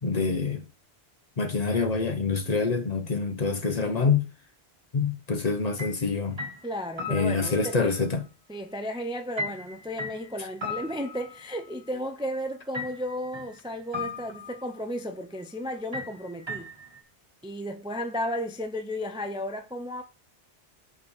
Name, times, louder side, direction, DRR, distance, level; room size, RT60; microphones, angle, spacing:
voice 1, 0.0-0.6 1.4-4.3 4.9-6.4 7.1-8.2, left 4 dB, 40° left, 0.8 m, -26 dB
sound 1, 5.8-6.0 6.4-7.8 9.4-11.7 12.7-13.6 13.9-14.7 15.9-17.0, left 3 dB, 25° right, 1.4 m, -37 dB
voice 2, 6.6-7.9 8.5-16.7 17.4-20.0, equal, 5° right, 0.5 m, -34 dB
5.7 x 4.9 x 6.3 m
omnidirectional pair, 1.1 m